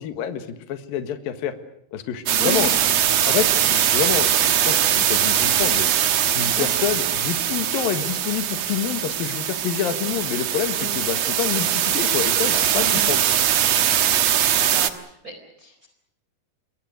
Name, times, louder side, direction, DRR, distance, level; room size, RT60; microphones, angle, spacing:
voice 1, 0.0-1.5 1.9-2.7 3.3-5.9 6.2-13.2, left 9 dB, 70° left, 10 dB, 3.3 m, -27 dB
sound 1, 2.3-14.9, right 10 dB, 60° right, 2.0 m, -21 dB
voice 2, 2.4-3.1 6.4-6.9 10.8-10.9 12.7-13.1 14.5-15.9, equal, 20° right, 5 dB, 4.3 m, -34 dB
27.5 x 22.5 x 6.4 m, 0.77 s
omnidirectional pair, 4.4 m